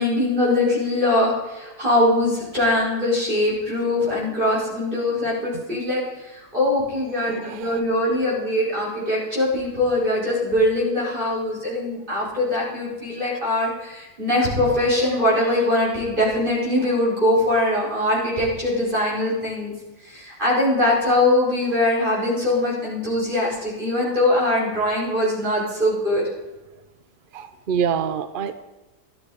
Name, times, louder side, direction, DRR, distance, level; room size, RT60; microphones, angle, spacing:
voice 1, 0.0-6.0 6.3-19.7 20.1-26.3, left 1 dB, 30° right, -6 dB, 5.1 m, -22 dB
voice 2, 7.2-7.8 27.3-28.6, right 7 dB, 70° right, 11 dB, 0.5 m, -26 dB
13.5 x 12.0 x 5.0 m, 1.1 s
omnidirectional pair, 1.8 m